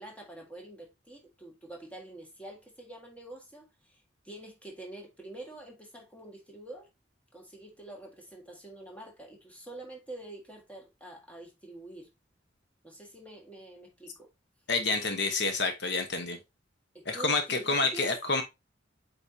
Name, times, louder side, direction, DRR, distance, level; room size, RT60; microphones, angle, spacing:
voice 1, 0.0-6.9 7.3-12.1 12.8-14.3 16.9-18.1, right 2 dB, 5° left, 1.8 m, -46 dB
voice 2, 14.7-16.4 17.0-18.4, left 3 dB, 60° left, 1.2 m, -28 dB
8.2 x 4.6 x 2.8 m
head